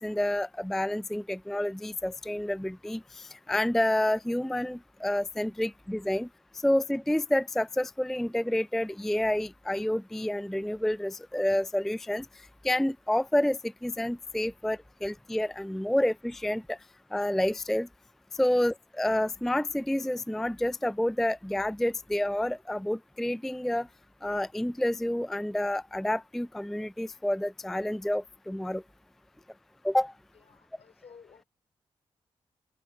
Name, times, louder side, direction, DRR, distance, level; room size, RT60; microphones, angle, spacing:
voice 1, 0.0-6.3 6.5-12.3 12.6-16.8 17.1-17.9 18.3-23.9 24.2-28.8 29.8-30.1, left 1 dB, 5° left, 0.3 m, -29 dB
voice 2, 30.3-31.5, left 6 dB, 65° left, 5.0 m, -54 dB
supercardioid pair, 45°, 12 cm